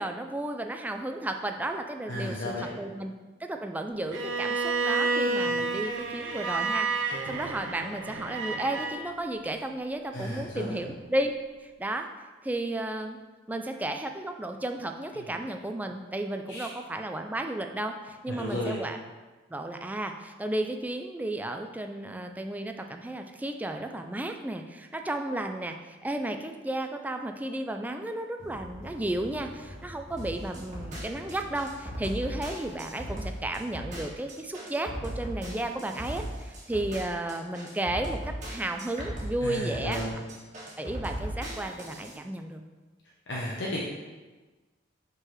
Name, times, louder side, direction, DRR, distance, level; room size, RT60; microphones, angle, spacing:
voice 1, 0.0-3.1 3.4-11.3 11.6-12.1 12.4-13.2 13.5-19.0 19.5-40.0 40.8-42.6, right 1 dB, 10° right, 5 dB, 0.3 m, -33 dB
voice 2, 2.1-2.7 5.5-5.6 10.1-10.8 15.1-15.3 16.5-16.7 18.3-18.8 39.4-40.2 43.3-43.8, left 1 dB, 65° left, -4 dB, 0.9 m, -33 dB
Bowed string instrument, 4.1-9.0, right 3 dB, 85° right, 0.7 m, -30 dB
sound 1, 28.4-33.6, equal, 30° left, 1.9 m, -47 dB
sound 2, 30.2-42.1, right 1 dB, 40° right, 1.5 m, -37 dB
5.4 x 3.9 x 5.6 m, 1.3 s
head